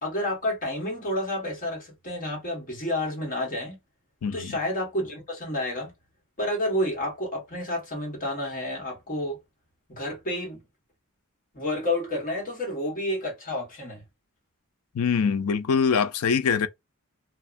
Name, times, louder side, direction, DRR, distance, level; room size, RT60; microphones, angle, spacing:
voice 1, 0.0-3.8 4.3-5.9 6.4-9.4 9.9-10.6 11.5-14.0, left 1 dB, 40° left, 1.4 m, -30 dB
voice 2, 4.2-4.6 14.9-16.7, left 6 dB, 75° left, 0.4 m, -23 dB
2.7 x 2.3 x 2.5 m
head